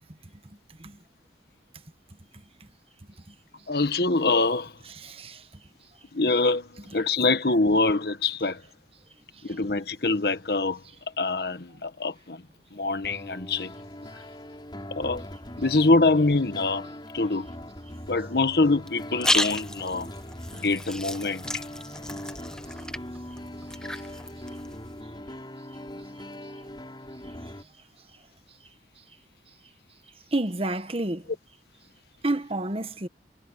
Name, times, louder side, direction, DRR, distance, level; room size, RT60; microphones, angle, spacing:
voice 1, 3.7-4.7 6.1-8.6 9.4-10.8 11.2-12.4 12.7-13.7 15.0-15.2 15.6-16.9 17.1-17.5 18.1-20.1 20.5-21.6, left 3 dB, 60° left, 1.5 m, -24 dB
voice 2, 5.0-5.4 30.3-31.2 32.2-33.1, right 2 dB, 30° right, 1.2 m, -29 dB
sound 1, 13.0-27.6, left 1 dB, 25° left, 6.3 m, -41 dB
sound 2, 18.9-25.0, left 1 dB, 5° left, 1.0 m, -33 dB
head